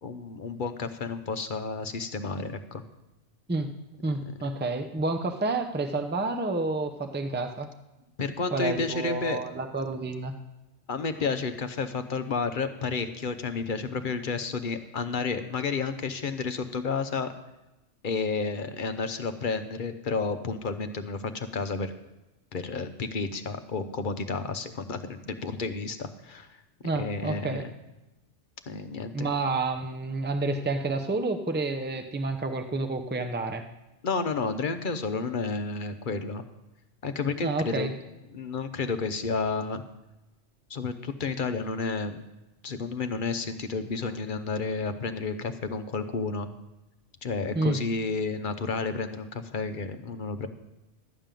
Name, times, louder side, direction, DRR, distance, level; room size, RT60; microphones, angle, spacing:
voice 1, 0.0-2.8 4.4-4.5 8.2-9.4 10.9-17.3 18.0-21.9 22.5-26.5 26.9-27.6 28.7-29.3 34.0-36.4 37.0-37.9 38.3-39.8 40.7-42.2 42.6-46.5 47.2-50.5, left 4 dB, 45° left, 9 dB, 0.9 m, -31 dB
voice 2, 4.0-7.7 8.5-10.3 26.8-27.7 29.1-33.6 37.4-37.9 47.5-47.8, right 3 dB, 10° right, 6 dB, 0.7 m, -29 dB
13.0 x 5.3 x 9.0 m, 0.98 s
omnidirectional pair, 1.2 m